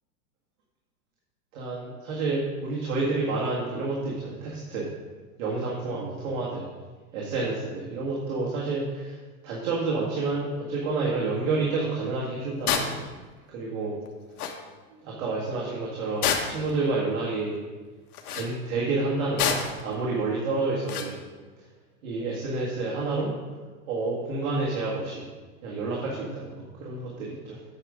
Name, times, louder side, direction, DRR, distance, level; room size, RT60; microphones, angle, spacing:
voice 1, 1.5-4.9 5.4-6.7 7.1-13.0 13.5-14.0 14.9-17.6 18.3-21.2 21.6-21.7 22.0-23.3 23.9-25.3 25.6-27.6, right 3 dB, 60° right, -4 dB, 1.8 m, -29 dB
sound 1, 12.7-12.9 14.1-14.2 14.4-14.6 16.2-16.7 18.1-18.5 19.4-19.8 20.9-21.1, left 7 dB, 75° left, 1.3 m, -27 dB
8.9 x 5.8 x 5.1 m, 1.4 s
supercardioid pair, 175°, 45 cm